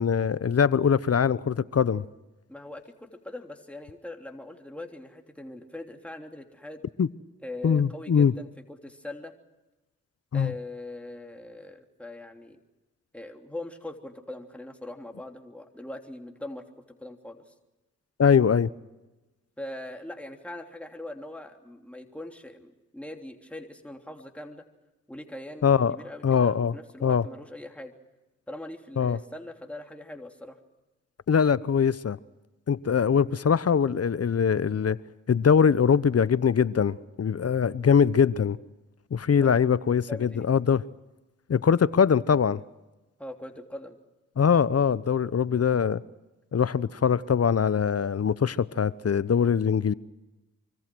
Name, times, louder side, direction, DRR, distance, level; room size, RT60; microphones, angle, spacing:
voice 1, 0.0-2.0 7.0-7.1 7.6-8.3 10.3-10.5 18.2-18.7 25.6-26.0 26.2-26.7 27.0-27.2 29.0-29.2 31.3-32.2 32.7-35.0 35.3-38.6 39.1-40.8 41.5-42.6 44.4-46.0 46.5-49.9, left 7 dB, 45° left, 0.9 m, -22 dB
voice 2, 2.5-6.8 7.4-9.3 10.3-12.6 13.1-17.5 19.6-24.6 25.1-27.9 28.5-30.6 33.2-33.4 39.4-39.8 40.1-40.5 43.2-44.0, left 1 dB, 5° left, 3.2 m, -41 dB
25.5 x 24.5 x 6.3 m
supercardioid pair, 40°, 33 cm